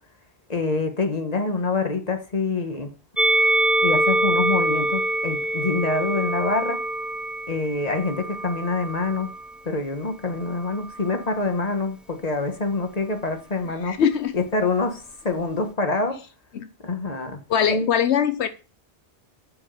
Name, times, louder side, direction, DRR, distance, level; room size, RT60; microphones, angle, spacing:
voice 1, 0.5-2.9 3.8-6.8 7.5-9.3 9.6-14.0 14.3-16.2 16.8-17.4 17.7-17.9, left 3 dB, 35° left, 1.7 m, -26 dB
Musical instrument, 3.2-9.6 10.4-11.4, right 1 dB, ahead, 0.4 m, -25 dB
voice 2, 13.8-14.4 16.5-16.7 17.5-18.5, left 8 dB, 80° left, 1.0 m, -22 dB
7.7 x 6.7 x 7.0 m
omnidirectional pair, 1.1 m